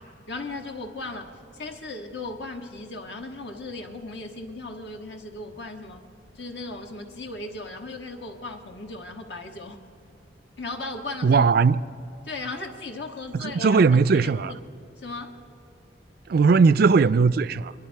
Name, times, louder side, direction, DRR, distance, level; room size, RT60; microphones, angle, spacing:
voice 1, 0.0-6.1 6.3-9.8 10.6-11.4 12.2-14.6 15.0-15.4, left 2 dB, 70° left, 1.6 m, -37 dB
voice 2, 11.2-11.8 13.4-14.5 16.3-17.7, right 4 dB, 55° right, 0.4 m, -18 dB
27.5 x 22.0 x 4.6 m
head